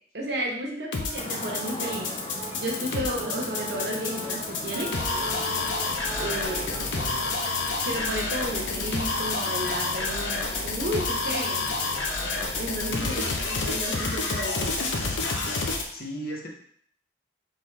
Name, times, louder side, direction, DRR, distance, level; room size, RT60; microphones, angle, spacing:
voice 1, 0.1-2.1 2.6-4.9 6.2-6.6 7.8-11.6 12.6-14.7, equal, 65° right, -1 dB, 1.1 m, -32 dB
sound 1, 0.9-15.8, left 3 dB, 85° left, 0.7 m, -29 dB
sound 2, 1.1-7.8, right 1 dB, 25° right, 0.6 m, -40 dB
sound 3, 1.2-12.8, left 2 dB, 30° left, 0.4 m, -40 dB
voice 2, 6.1-7.2 12.8-13.1 15.9-16.5, equal, 50° left, 0 dB, 0.8 m, -37 dB
4.2 x 3.8 x 3.2 m, 0.63 s
head